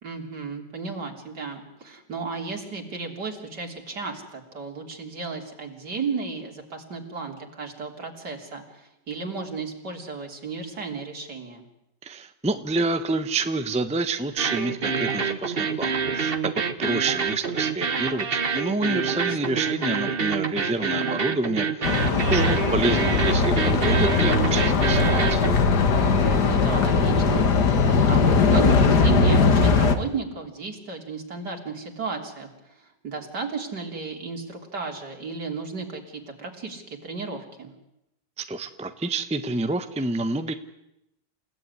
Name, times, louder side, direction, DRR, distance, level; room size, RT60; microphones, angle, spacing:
voice 1, 0.0-11.7 19.0-19.6 25.9-27.5 28.1-37.7, right 4 dB, 65° right, 3 dB, 3.9 m, -34 dB
voice 2, 12.0-22.0 22.3-25.5 38.4-40.5, right 2 dB, 5° right, 9 dB, 0.9 m, -28 dB
sound 1, 14.4-25.5, right 5 dB, 35° right, 1.4 m, -27 dB
sound 2, 21.8-30.0, left 4 dB, 65° left, 2.1 m, -20 dB
28.5 x 16.5 x 9.8 m, 0.87 s
omnidirectional pair, 1.9 m